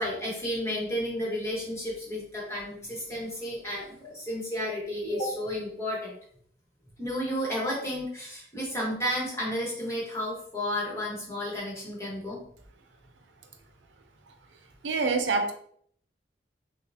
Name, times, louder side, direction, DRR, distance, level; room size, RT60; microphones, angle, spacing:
voice 1, 0.0-6.1 7.0-12.4, equal, 15° left, -4 dB, 1.3 m, -32 dB
voice 2, 14.8-15.5, right 4 dB, 85° right, 6 dB, 0.6 m, -25 dB
6.4 x 2.4 x 2.7 m, 0.64 s
head